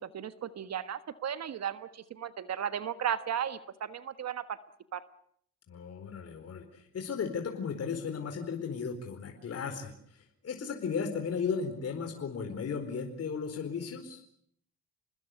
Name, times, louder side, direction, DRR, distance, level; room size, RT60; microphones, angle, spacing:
voice 1, 0.0-4.6 4.9-5.0, right 9 dB, 60° right, 12 dB, 1.5 m, -35 dB
voice 2, 5.7-14.2, left 6 dB, 55° left, 4 dB, 4.6 m, -35 dB
28.5 x 20.5 x 8.0 m, 0.66 s
cardioid pair, 90°, 30 cm